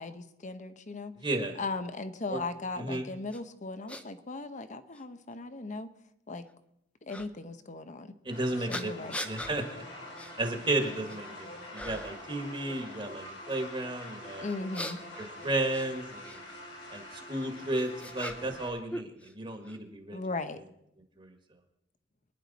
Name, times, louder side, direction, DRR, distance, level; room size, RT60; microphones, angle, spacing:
voice 1, 0.0-1.1 1.6-5.9 6.3-6.4 7.0-8.1 8.6-9.2 14.4-15.0 20.1-20.6, left 3 dB, 40° left, 10 dB, 0.9 m, -37 dB
voice 2, 1.2-1.6 2.3-2.4 2.8-3.1 8.3-8.9 9.2-9.8 10.4-11.5 11.7-14.5 15.2-16.4 16.9-17.0 17.3-20.2 21.2-21.3, right 2 dB, 25° right, 4 dB, 1.6 m, -33 dB
sound 1, 3.3-3.4 3.9-4.0 4.9-5.0 7.1-7.3 8.7-9.6 10.2-10.3 10.8-11.3 11.7-12.2 14.4-16.4 17.4-18.6 18.9-19.8, left 1 dB, 5° left, 0.8 m, -41 dB
sound 2, 8.3-18.7, left 1 dB, 90° left, 4.7 m, -45 dB
24.0 x 10.5 x 4.1 m, 0.81 s
head